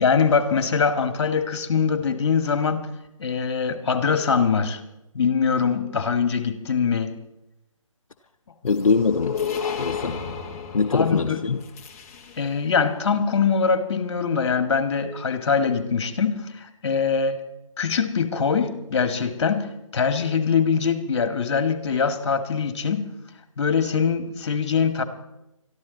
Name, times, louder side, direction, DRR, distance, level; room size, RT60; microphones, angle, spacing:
voice 1, 0.0-2.9 3.2-4.8 5.1-7.1 10.9-11.4 12.4-17.4 17.8-23.1 23.6-25.0, left 6 dB, 50° left, 8 dB, 2.1 m, -23 dB
voice 2, 8.6-10.2 10.7-11.6, left 4 dB, 70° left, 4 dB, 0.9 m, -23 dB
sound 1, 8.7-12.7, left 6 dB, 25° left, 1.3 m, -32 dB
22.0 x 13.5 x 4.1 m, 0.91 s
figure-of-eight pair, 150°, 18 cm